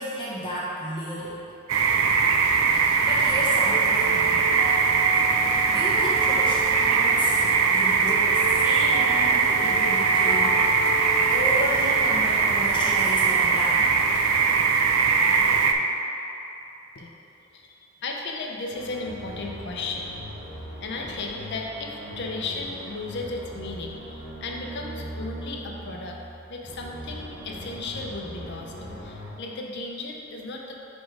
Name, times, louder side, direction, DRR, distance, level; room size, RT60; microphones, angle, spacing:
voice 1, 0.0-1.4 2.7-4.5 5.4-7.4 7.7-10.6 11.3-13.9, equal, 25° left, -7 dB, 1.0 m, -33 dB
sound 1, 1.7-15.7, right 5 dB, 85° right, 0.4 m, -21 dB
sound 2, 3.7-13.7, right 1 dB, 65° right, 1.1 m, -35 dB
voice 2, 17.5-20.2 20.8-26.2 26.5-28.7 29.0-30.8, left 3 dB, 55° left, 0 dB, 0.6 m, -35 dB
sound 3, 18.7-29.3, equal, 45° right, 1.2 m, -40 dB
4.8 x 4.3 x 4.6 m, 2.9 s
head